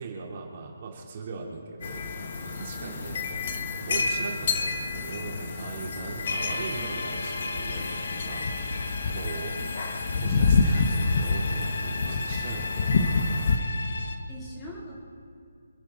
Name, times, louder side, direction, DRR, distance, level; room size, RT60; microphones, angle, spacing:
voice 1, 0.0-2.1 2.4-3.4 3.9-8.5 9.1-9.6 10.1-12.9, right 4 dB, 35° right, -2 dB, 3.8 m, -39 dB
sound 1, 1.8-13.6, left 4 dB, 45° left, 1.6 m, -28 dB
sound 2, 6.2-14.2, left 3 dB, 65° left, 1.6 m, -35 dB
voice 2, 14.3-15.0, equal, 15° left, -3 dB, 3.8 m, -43 dB
27.0 x 10.5 x 4.3 m, 2.4 s
hypercardioid pair, 165°, 0 cm